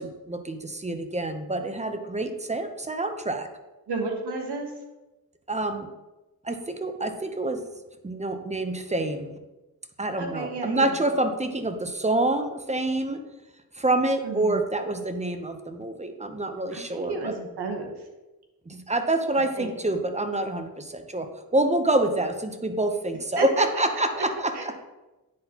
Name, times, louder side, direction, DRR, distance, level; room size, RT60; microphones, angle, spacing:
voice 1, 0.0-3.5 5.5-5.9 6.4-7.6 8.0-9.3 10.0-13.2 13.8-17.3 18.7-24.8, right 2 dB, 20° right, 7 dB, 0.7 m, -27 dB
voice 2, 3.9-4.7 10.2-10.9 14.2-14.6 16.7-17.9 19.6-19.7 23.4-23.5 24.2-24.3 24.5-24.8, right 3 dB, 90° right, 3 dB, 1.1 m, -32 dB
9.5 x 4.0 x 2.9 m, 1.1 s
cardioid pair, 50°, 39 cm